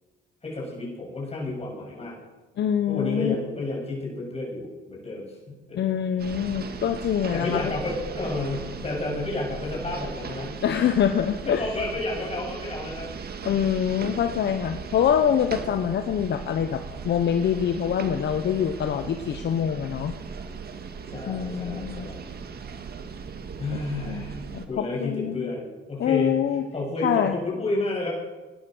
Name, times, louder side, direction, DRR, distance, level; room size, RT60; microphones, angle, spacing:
voice 1, 0.4-2.2 2.9-5.8 7.3-10.6 11.4-13.1 21.1-22.2 23.6-24.4 24.7-26.4 26.7-28.1, left 2 dB, 30° left, -2 dB, 6.9 m, -31 dB
voice 2, 2.6-3.3 5.7-7.6 10.6-11.6 13.4-20.1 21.3-22.1 24.1-24.2 24.5-25.5 26.0-26.6 27.0-27.4, left 9 dB, 60° left, 8 dB, 1.0 m, -25 dB
sound 1, 6.2-24.7, right 5 dB, 55° right, 1.8 m, -38 dB
18.0 x 11.0 x 6.3 m, 1.2 s
cardioid pair, 90°, 20 cm